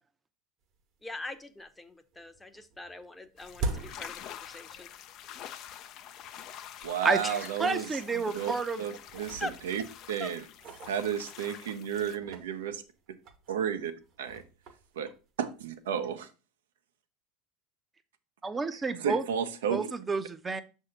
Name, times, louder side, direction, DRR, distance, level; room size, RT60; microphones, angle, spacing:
sound 1, 0.8-0.9 1.3-5.0 5.3-5.5 6.2-6.3 6.8-6.9 7.2-7.4 8.1-8.6 9.0-11.6 12.1-16.0, right 3 dB, 50° right, 1.1 m, -42 dB
voice 1, 1.0-4.9 7.2-7.5 9.4-9.5 10.2-10.3, left 2 dB, 10° left, 0.8 m, -42 dB
sound 2, 3.4-12.2, left 10 dB, 55° left, 0.5 m, -46 dB
voice 2, 6.8-8.5 8.8-9.8 10.1-10.4 10.8-12.8 13.5-13.9 14.2-14.4 15.0-15.1 15.4-16.3 19.0-19.9, right 8 dB, 80° right, 0.7 m, -32 dB
voice 3, 7.6-8.8 18.4-19.2 19.7-20.6, right 4 dB, 20° right, 0.6 m, -30 dB
6.4 x 2.7 x 5.7 m
hypercardioid pair, 85°, 0 cm